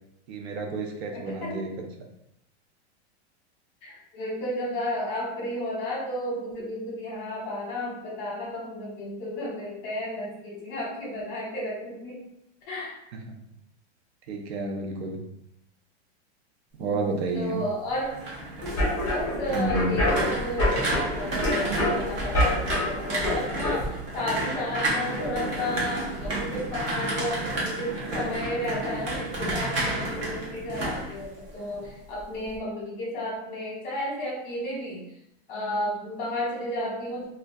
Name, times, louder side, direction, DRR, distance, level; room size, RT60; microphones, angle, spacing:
voice 1, 0.3-1.7 14.3-15.2 16.8-17.6 19.5-20.0, right 3 dB, 70° right, 3 dB, 0.6 m, -30 dB
voice 2, 1.1-1.6 3.8-12.2 12.7-12.9 16.8-18.2 19.1-35.0 35.5-37.4, left 1 dB, 45° left, -4 dB, 1.0 m, -33 dB
sound 1, 17.9-31.9 32.2-32.6, right 2 dB, 20° right, 0.4 m, -31 dB
sound 2, 18.6-23.8, left 1 dB, 10° left, 0.7 m, -27 dB
2.2 x 2.2 x 2.5 m, 0.82 s
supercardioid pair, 160°, 33 cm